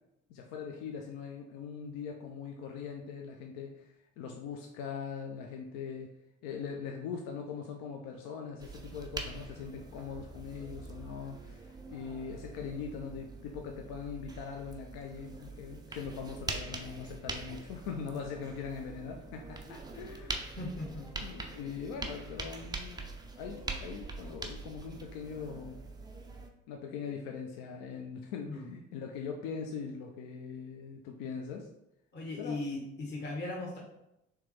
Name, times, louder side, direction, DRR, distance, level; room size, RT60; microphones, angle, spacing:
voice 1, 0.3-6.1 6.4-20.6 21.2-23.1 23.4-25.9 26.7-31.7 32.4-32.6, left 6 dB, 60° left, 2 dB, 0.5 m, -41 dB
sound 1, 8.6-26.5, right 3 dB, 10° right, 0.4 m, -43 dB
voice 2, 20.6-21.1 28.5-28.7 32.1-33.8, left 2 dB, 25° left, -1 dB, 0.8 m, -38 dB
3.4 x 3.1 x 3.2 m, 0.84 s
figure-of-eight pair, 50°, 39 cm